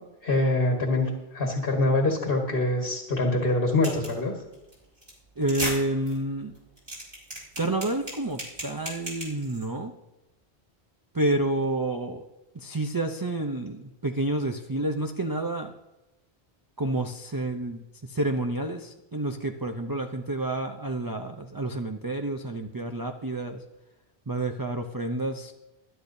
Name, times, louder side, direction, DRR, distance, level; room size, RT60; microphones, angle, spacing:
voice 1, 0.2-4.3, left 2 dB, 60° left, 1 dB, 1.8 m, -24 dB
sound 1, 3.8-4.2 4.5-4.7 5.0-5.1 5.4-5.7 6.1-6.2 6.6-9.7, equal, 50° right, 5.8 m, -34 dB
voice 2, 5.4-6.5 7.6-9.9 11.1-12.2 12.5-15.7 16.8-23.6 24.3-25.5, right 2 dB, 25° right, 4 dB, 0.5 m, -29 dB
21.5 x 11.5 x 2.7 m, 1.0 s
omnidirectional pair, 1.1 m